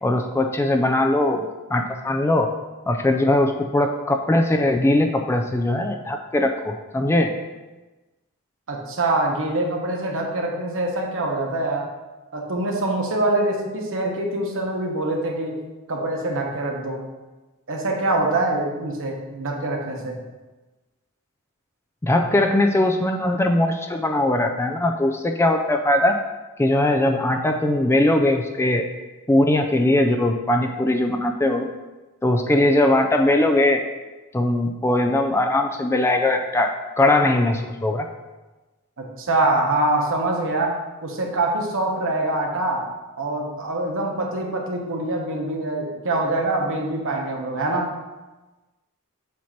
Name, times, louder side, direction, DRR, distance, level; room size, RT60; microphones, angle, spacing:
voice 1, 0.0-2.5 2.9-7.3 22.0-26.1 26.6-28.9 29.3-31.7 32.2-33.8 34.3-36.7 37.0-38.1, left 1 dB, 10° left, 4 dB, 0.3 m, -20 dB
voice 2, 8.7-11.9 12.3-15.6 15.9-17.0 17.7-20.2 39.0-42.8 43.2-47.9, right 2 dB, 60° right, 0 dB, 1.1 m, -24 dB
7.5 x 2.9 x 5.7 m, 1.2 s
head